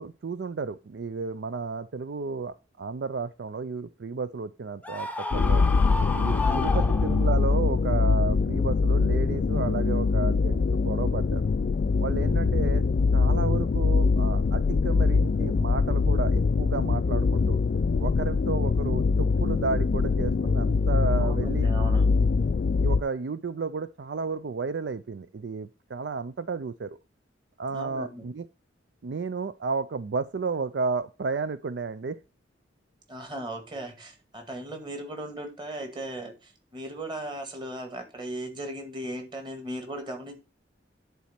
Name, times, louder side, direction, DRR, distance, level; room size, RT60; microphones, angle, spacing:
voice 1, 0.0-5.7 6.1-11.4 12.0-12.8 13.1-17.6 18.0-21.7 22.8-27.0 27.6-28.5 29.0-32.2, right 4 dB, 65° right, 14 dB, 0.4 m, -32 dB
Screaming, 4.8-7.5, left 3 dB, 10° left, 0.6 m, -32 dB
sound 1, 5.3-23.0, left 4 dB, 50° left, 0.3 m, -23 dB
voice 2, 6.4-6.9 21.2-22.2 27.7-28.2 33.1-40.4, right 1 dB, 25° right, 5 dB, 2.0 m, -37 dB
10.5 x 4.2 x 5.8 m, 0.30 s
head